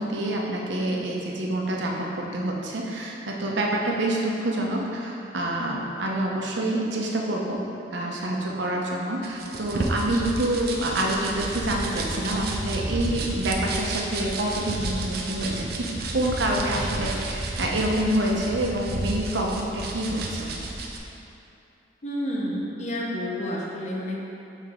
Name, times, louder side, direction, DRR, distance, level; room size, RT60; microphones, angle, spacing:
voice 1, 0.0-7.6 7.9-20.5, right 1 dB, 85° right, -1 dB, 0.8 m, -27 dB
sound 1, 9.2-21.0, right 2 dB, 55° right, 0.6 m, -31 dB
voice 2, 22.0-24.2, equal, 40° left, -3 dB, 0.8 m, -30 dB
6.8 x 4.4 x 3.7 m, 2.8 s
head